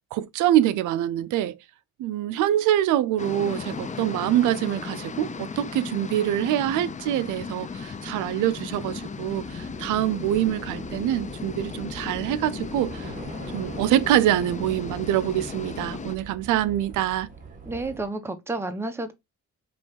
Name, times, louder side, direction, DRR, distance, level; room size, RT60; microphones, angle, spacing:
voice 1, 0.1-1.6 2.0-13.1 13.5-17.3, right 12 dB, 85° right, 0.6 m, -25 dB
sound 1, 3.2-16.2, left 5 dB, 25° left, 0.5 m, -36 dB
Train / Subway metro underground, 5.6-18.0, right 4 dB, 25° right, 1.6 m, -43 dB
voice 2, 17.7-19.1, right 2 dB, 10° right, 0.9 m, -30 dB
5.3 x 3.1 x 2.8 m
cardioid pair, 90°, 30 cm